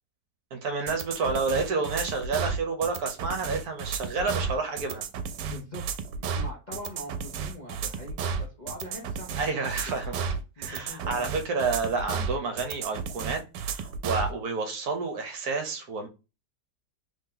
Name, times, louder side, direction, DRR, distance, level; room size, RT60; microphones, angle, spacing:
voice 1, 0.5-5.1 9.4-10.1 10.6-13.4 13.7-16.1, right 4 dB, 65° right, 1.2 m, -29 dB
sound 1, 0.9-14.3, right 6 dB, 85° right, 1.2 m, -33 dB
voice 2, 5.5-5.8 6.2-10.0 10.6-11.4, left 1 dB, 35° left, 0.7 m, -43 dB
3.3 x 2.8 x 3.7 m
omnidirectional pair, 1.9 m